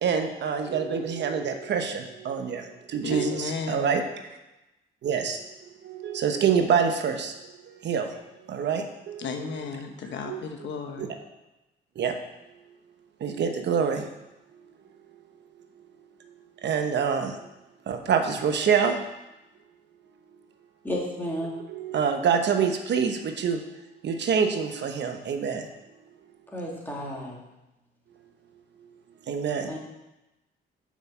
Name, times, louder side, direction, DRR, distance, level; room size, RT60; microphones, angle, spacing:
voice 1, 0.0-4.0 5.0-5.4 5.8-7.3 7.7-8.2 8.5-9.6 10.3-10.4 11.0-11.1 12.0-12.2 13.2-14.1 16.6-17.4 17.9-19.0 21.7-23.6 24.0-25.7 29.3-29.7, right 6 dB, 65° right, 5 dB, 1.0 m, -26 dB
voice 2, 3.0-4.0 9.2-11.1, left 5 dB, 65° left, 4 dB, 1.1 m, -34 dB
voice 3, 20.8-21.5 26.5-27.4 29.7-29.8, equal, 10° left, -3 dB, 2.9 m, -32 dB
6.5 x 6.1 x 7.1 m, 0.98 s
cardioid pair, 90°, 20 cm